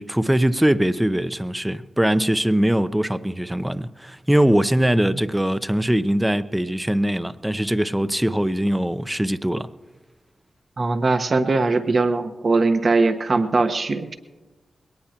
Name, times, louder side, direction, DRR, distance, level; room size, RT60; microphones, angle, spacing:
voice 1, 0.0-9.7, right 1 dB, 10° right, 0.7 m, -21 dB
voice 2, 10.8-14.1, right 3 dB, 55° right, 1.3 m, -20 dB
21.5 x 18.5 x 3.0 m
cardioid pair, 50°, 0 cm